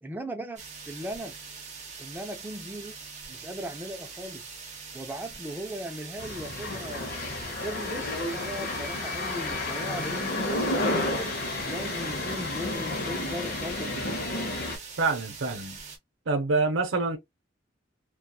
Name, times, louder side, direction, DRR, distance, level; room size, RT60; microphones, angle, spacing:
voice 1, 0.0-1.3 2.0-2.9 3.3-4.5 4.9-7.2 7.6-11.3 11.7-14.1, equal, 10° right, 0.3 m, -38 dB
sound 1, 0.6-16.0, right 5 dB, 35° right, 0.7 m, -43 dB
sound 2, 6.2-14.8, left 2 dB, 50° left, 0.7 m, -31 dB
voice 2, 15.0-15.8 16.3-17.2, right 3 dB, 80° right, 0.6 m, -26 dB
2.8 x 2.3 x 2.3 m
head